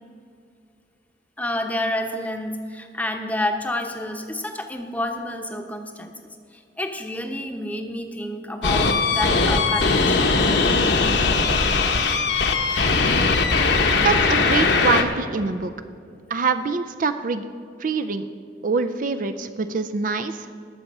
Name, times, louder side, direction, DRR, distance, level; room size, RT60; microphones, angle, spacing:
voice 1, 1.4-6.1 6.5-10.2, left 1 dB, 10° left, 4 dB, 0.9 m, -29 dB
sound 1, 8.6-15.0, left 4 dB, 65° left, 1.0 m, -20 dB
voice 2, 14.0-15.7 16.3-17.5 17.8-18.3 18.6-20.5, right 4 dB, 45° right, 9 dB, 0.5 m, -24 dB
19.5 x 7.1 x 5.4 m, 2.3 s
head